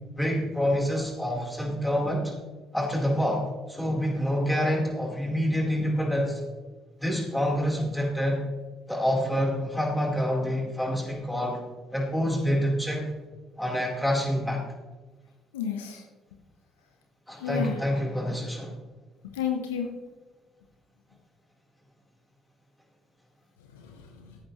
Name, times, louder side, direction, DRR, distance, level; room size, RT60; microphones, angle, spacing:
voice 1, 0.2-2.3 2.7-6.5 7.0-8.4 8.9-11.6 11.9-13.0 13.6-14.6 17.3-18.7, equal, 5° left, -2 dB, 4.3 m, -27 dB
voice 2, 15.5-16.0 17.4-17.8 19.2-19.9 23.7-24.4, left 8 dB, 85° left, 4 dB, 1.0 m, -32 dB
16.0 x 8.8 x 3.3 m, 1.3 s
hypercardioid pair, 55°, 0 cm